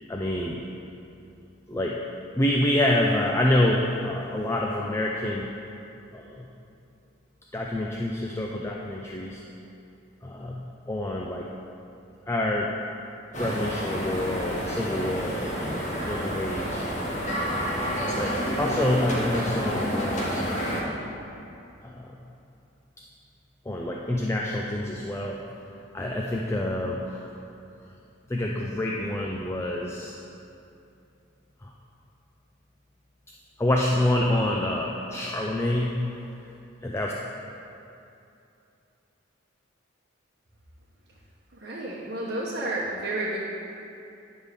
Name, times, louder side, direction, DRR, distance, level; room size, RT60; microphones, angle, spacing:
voice 1, 0.1-0.6 1.7-2.0 2.3-5.5 6.1-6.5 7.5-9.4 10.2-11.5 12.3-12.7 13.4-16.9 17.8-20.5 21.8-22.2 23.7-25.4 25.9-27.3 28.3-30.2 31.6-31.7 33.6-36.0 36.8-37.1, left 1 dB, 15° left, -1 dB, 0.4 m, -27 dB
sound 1, 13.3-20.8, equal, 35° left, 1.2 m, -29 dB
voice 2, 41.5-43.4, right 1 dB, 55° right, -7 dB, 0.9 m, -31 dB
9.8 x 3.6 x 6.5 m, 2.7 s
head